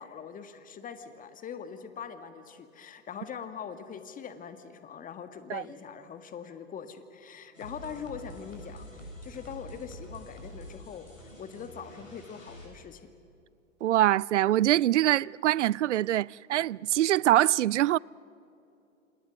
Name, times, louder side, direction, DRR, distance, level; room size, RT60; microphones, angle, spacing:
voice 1, 0.0-13.0, left 7 dB, 20° left, 1.7 m, -42 dB
sound 1, 7.5-12.7, equal, 85° left, 7.1 m, -46 dB
voice 2, 13.8-18.0, right 13 dB, 70° right, 0.5 m, -24 dB
27.5 x 27.5 x 6.3 m
figure-of-eight pair, 100°, 38 cm